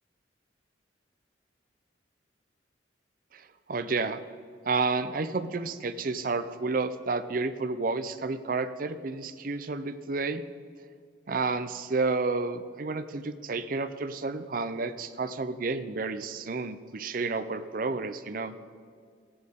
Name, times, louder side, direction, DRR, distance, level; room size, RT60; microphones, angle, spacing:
voice 1, 3.3-4.2 4.7-10.4 11.3-18.5, right 3 dB, 45° right, 11 dB, 0.5 m, -31 dB
17.0 x 8.7 x 3.6 m, 2.2 s
head